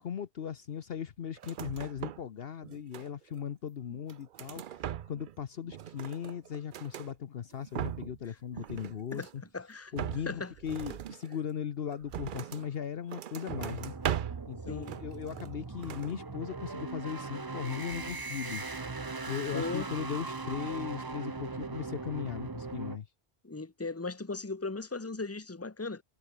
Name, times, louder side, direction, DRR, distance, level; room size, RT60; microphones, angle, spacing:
voice 1, 0.0-4.6 5.1-9.4 9.9-13.9 14.5-18.8 19.3-23.1, left 8 dB, 60° left, 1.0 m, -38 dB
sound 1, 1.4-2.3 2.6-3.4 3.9-5.4 5.6-7.1 7.5-8.2 8.5-9.5 9.9-12.7 13.1-14.5 14.8-15.6 15.8-16.1, right 10 dB, 55° right, 0.6 m, -39 dB
voice 2, 9.5-9.9 10.3-10.5 14.7-15.0 19.5-19.9 23.4-26.0, left 3 dB, 15° left, 1.2 m, -37 dB
sound 2, 13.5-23.0, right 3 dB, 20° right, 0.7 m, -40 dB
omnidirectional pair, 1.2 m